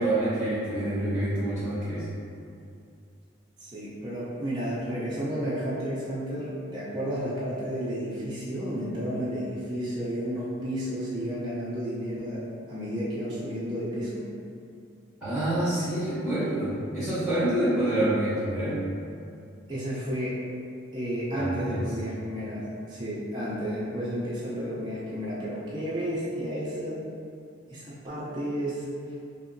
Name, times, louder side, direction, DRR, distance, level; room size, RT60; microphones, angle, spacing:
voice 1, 0.0-2.0 15.2-18.8 21.3-21.8, right 1 dB, ahead, -15 dB, 0.9 m, -27 dB
voice 2, 3.6-12.4 12.7-14.2 19.7-20.4 20.9-27.0 27.7-28.9, equal, 20° right, -10 dB, 0.4 m, -32 dB
2.8 x 2.6 x 2.6 m, 2.5 s
head